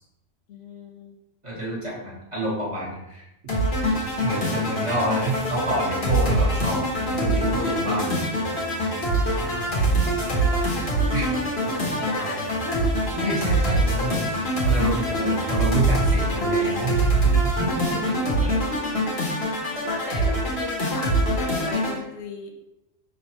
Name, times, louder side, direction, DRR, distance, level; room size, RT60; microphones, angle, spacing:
voice 1, 0.5-1.2 9.3-11.0 11.7-13.2 19.8-22.6, left 3 dB, 75° left, 1 dB, 1.0 m, -37 dB
voice 2, 1.4-3.3 4.2-8.4 11.1-11.2 13.2-14.2 14.6-17.1 17.4-18.5, right 1 dB, 25° right, -6 dB, 1.4 m, -28 dB
sound 1, 3.5-22.0, right 1 dB, 55° left, 1.4 m, -24 dB
sound 2, 3.9-17.9, right 4 dB, 65° right, 0.4 m, -40 dB
5.5 x 3.2 x 2.9 m, 0.90 s
omnidirectional pair, 1.3 m